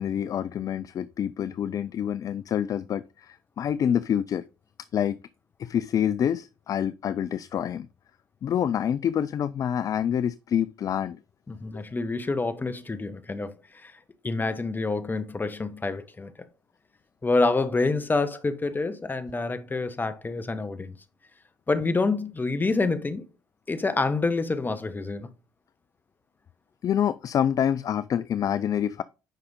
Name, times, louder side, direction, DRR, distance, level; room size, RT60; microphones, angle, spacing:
voice 1, 0.0-4.4 4.9-5.2 5.6-7.9 8.4-11.2 11.7-11.8 26.8-29.0, left 9 dB, 40° left, 0.4 m, -27 dB
voice 2, 11.5-14.0 14.2-16.3 17.2-21.0 21.7-23.3 23.7-25.3, left 3 dB, 20° left, 1.1 m, -27 dB
9.1 x 5.6 x 3.7 m
hypercardioid pair, 60°, 9 cm